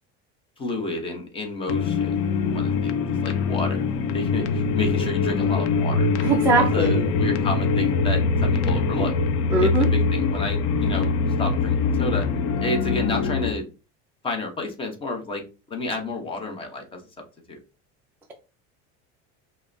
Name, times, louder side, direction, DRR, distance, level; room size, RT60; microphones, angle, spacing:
voice 1, 0.6-2.2 2.5-3.8 4.1-6.1 6.6-9.1 9.6-11.1 11.4-12.3 12.6-13.7 14.2-15.4 15.7-17.0 17.5-17.6, left 2 dB, 15° left, 3 dB, 0.7 m, -30 dB
sound 1, 1.7-13.5, left 4 dB, 85° left, 0.7 m, -23 dB
voice 2, 6.2-7.1 9.5-9.9, right 2 dB, 5° right, 0 dB, 0.3 m, -21 dB
5.4 x 2.0 x 2.6 m, 0.32 s
cardioid pair, 160°, 34 cm